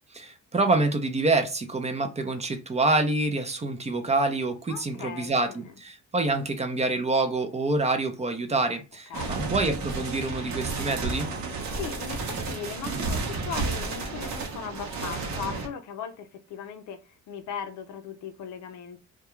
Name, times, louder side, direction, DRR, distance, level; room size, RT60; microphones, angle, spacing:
voice 1, 0.1-11.3, right 2 dB, 20° right, 0.5 m, -26 dB
voice 2, 4.7-5.7 9.1-9.4 11.7-19.0, left 7 dB, 75° left, 0.5 m, -38 dB
sound 1, 9.1-15.7, right 3 dB, 65° right, 0.8 m, -32 dB
2.3 x 2.2 x 2.9 m
cardioid pair, 90°, 30 cm